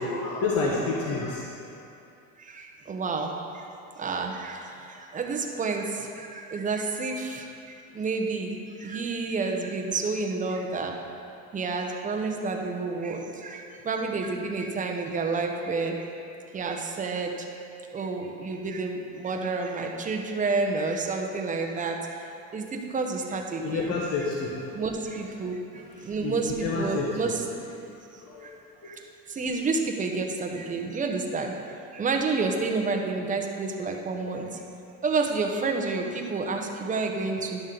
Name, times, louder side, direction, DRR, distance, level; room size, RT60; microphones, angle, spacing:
voice 1, 0.0-1.7 23.6-24.7 25.7-26.4 26.6-27.3 28.2-28.5, left 4 dB, 40° left, -3 dB, 1.0 m, -29 dB
voice 2, 2.4-3.6 4.0-11.0 11.5-16.0 16.5-17.5 17.9-22.2 22.5-23.9 24.7-27.4 28.4-28.5 28.8-29.0 29.3-34.6 35.0-37.6, right 4 dB, 20° right, 2 dB, 0.8 m, -30 dB
11.0 x 6.1 x 3.8 m, 2.5 s
cardioid pair, 135°, 36 cm